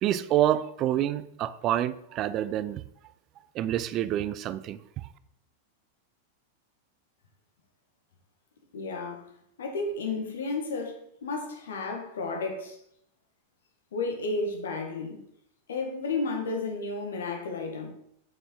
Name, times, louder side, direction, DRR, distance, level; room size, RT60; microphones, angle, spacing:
voice 1, 0.0-2.8 3.5-5.1, right 12 dB, 35° right, 0.4 m, -27 dB
voice 2, 8.7-9.3 9.6-12.8 13.9-15.2 15.7-17.9, left 3 dB, 70° left, 1.8 m, -32 dB
7.7 x 5.7 x 4.7 m
figure-of-eight pair, 90°, 0 cm